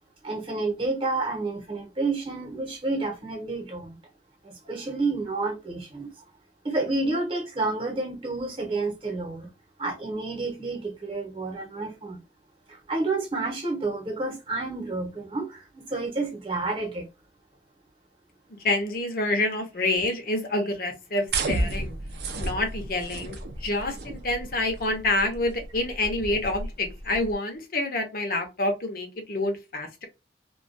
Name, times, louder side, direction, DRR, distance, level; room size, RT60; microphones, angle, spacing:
voice 1, 0.2-4.0 4.4-6.1 6.6-9.5 9.8-12.2 12.7-17.1, right 3 dB, 30° right, 0.9 m, -30 dB
voice 2, 18.5-22.0 22.4-30.0, left 2 dB, 55° left, 0.7 m, -27 dB
sound 1, 21.3-27.3, right 2 dB, 65° right, 0.4 m, -33 dB
2.3 x 2.3 x 2.5 m
head